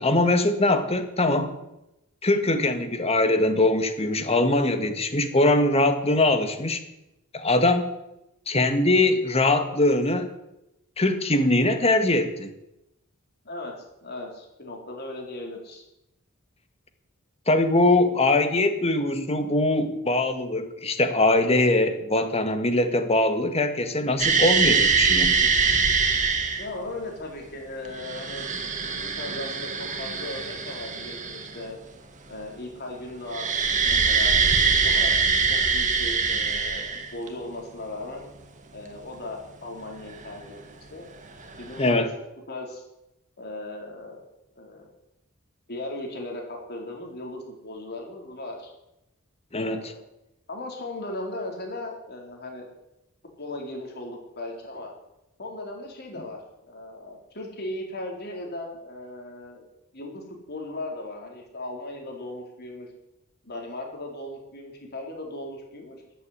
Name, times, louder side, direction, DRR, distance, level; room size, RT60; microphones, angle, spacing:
voice 1, 0.0-1.6 2.2-6.8 7.3-7.8 8.5-10.3 11.0-12.5 17.5-25.4 41.8-42.1 49.5-49.9, left 2 dB, 30° left, 8 dB, 1.6 m, -22 dB
voice 2, 13.4-15.8 26.6-28.5 28.9-31.8 32.3-34.4 34.8-35.2 35.5-36.8 37.1-38.3 38.7-40.6 40.9-41.1 41.6-42.8 43.4-44.2 44.6-44.9 45.7-48.7 49.6-50.0 50.5-52.7 53.4-54.9 55.4-59.6 59.9-62.9 63.4-66.0, left 1 dB, 50° left, 1 dB, 4.2 m, -37 dB
sound 1, 24.2-26.7 27.8-31.7 33.3-37.3 40.3-40.4 41.5-41.9, right 5 dB, 35° right, 2.0 m, -23 dB
14.5 x 8.3 x 9.9 m, 0.90 s
head